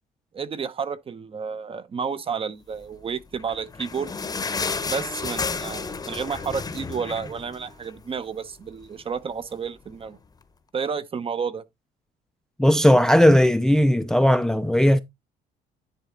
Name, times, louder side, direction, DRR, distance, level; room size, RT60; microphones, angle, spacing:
voice 1, 0.3-4.1 4.8-10.2 10.7-11.6, right 6 dB, 35° right, 0.8 m, -31 dB
sound 1, 3.3-8.1 8.5-8.6 8.8-9.0 9.7-9.8, left 4 dB, 20° left, 0.9 m, -31 dB
voice 2, 12.6-15.0, equal, 5° left, 0.5 m, -17 dB
10.5 x 4.2 x 3.8 m
cardioid pair, 110°, 17 cm